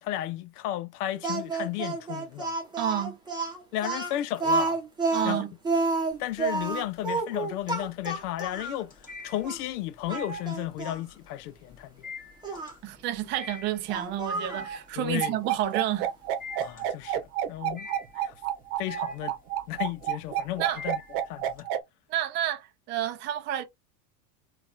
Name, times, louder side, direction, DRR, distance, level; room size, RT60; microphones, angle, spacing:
voice 1, 0.0-2.5 3.7-4.8 5.2-5.4 6.2-8.9 9.2-12.1 15.0-15.4 16.6-17.9 18.1-18.3 18.8-19.3 19.7-21.0 21.3-21.7, left 13 dB, 75° left, 0.7 m, -33 dB
Speech, 1.2-8.8 9.4-9.6 10.1-11.0 12.4-12.7 13.9-14.7, right 3 dB, 10° right, 0.9 m, -30 dB
voice 2, 2.8-3.2 5.1-5.5 12.8-16.1 20.6-20.8 22.1-23.6, right 12 dB, 25° right, 0.4 m, -30 dB
sound 1, 6.1-6.7 7.1-21.6, left 1 dB, 20° left, 1.2 m, -44 dB
sound 2, 15.2-21.8, right 11 dB, 70° right, 0.8 m, -29 dB
3.9 x 2.4 x 2.5 m
supercardioid pair, 120°, 46 cm